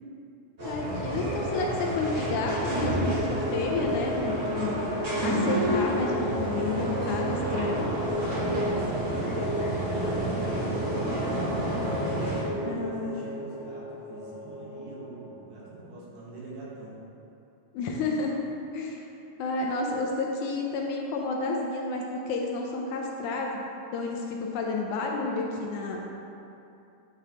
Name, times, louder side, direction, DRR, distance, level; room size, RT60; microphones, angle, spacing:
voice 1, 0.6-4.8 5.2-7.9 12.7-13.3 17.7-18.4 18.7-19.0 19.4-23.6 23.9-26.0, left 3 dB, 80° left, 0 dB, 1.9 m, -31 dB
sound 1, 0.6-12.4, right 1 dB, 35° right, 1.2 m, -30 dB
sound 2, 1.1-15.4, equal, 45° left, 1.6 m, -34 dB
voice 2, 8.6-11.7 12.3-17.0, right 2 dB, 75° right, -6 dB, 2.7 m, -43 dB
9.4 x 4.9 x 2.9 m, 2.7 s
omnidirectional pair, 3.8 m